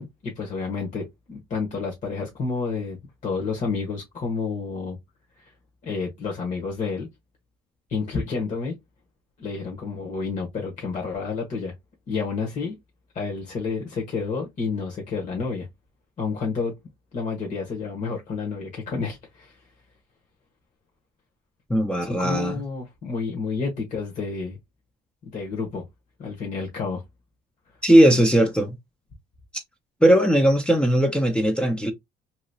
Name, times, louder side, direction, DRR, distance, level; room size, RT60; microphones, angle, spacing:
voice 1, 0.0-3.0 3.2-5.0 5.8-7.1 7.9-8.7 9.4-11.7 12.1-12.8 13.1-15.7 16.2-16.7 17.1-19.6 22.1-24.6 25.2-25.8 26.2-27.0, left 4 dB, 45° left, 1.2 m, -30 dB
voice 2, 21.7-22.5 27.8-28.8 29.5-29.6 30.0-31.9, right 1 dB, 5° left, 0.6 m, -18 dB
3.0 x 2.7 x 2.6 m
cardioid pair, 110°, 17 cm